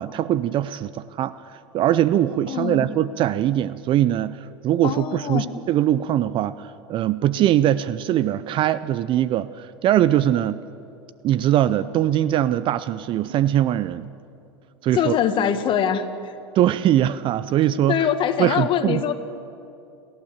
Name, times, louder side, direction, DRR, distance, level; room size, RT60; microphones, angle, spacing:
voice 1, 0.0-10.6 11.2-14.1 14.8-15.2 16.5-18.1 18.4-19.0, right 12 dB, 40° right, 16 dB, 0.5 m, -21 dB
voice 2, 2.5-2.9 4.8-5.5 14.9-16.3 17.9-19.1, left 9 dB, 40° left, 9 dB, 1.7 m, -23 dB
29.5 x 12.0 x 7.4 m, 2.6 s
hypercardioid pair, 95°, 14 cm